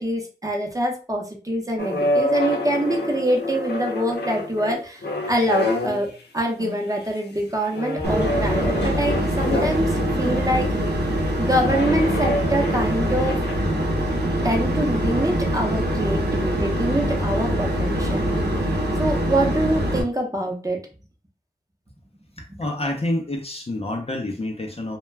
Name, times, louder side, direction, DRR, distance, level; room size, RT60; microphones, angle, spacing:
voice 1, 0.0-11.0 11.4-13.4 14.4-18.5 19.0-20.8, right 1 dB, 20° right, 0 dB, 0.7 m, -25 dB
sound 1, 1.8-6.1 6.6-7.0 7.7-10.5 11.6-13.6, left 1 dB, 70° left, 0.7 m, -27 dB
sound 2, 8.0-20.0, equal, 70° right, 0.8 m, -23 dB
voice 2, 22.4-25.0, left 1 dB, 35° left, 2 dB, 0.5 m, -28 dB
2.2 x 2.2 x 3.2 m, 0.35 s
wide cardioid pair, 45°, 18 cm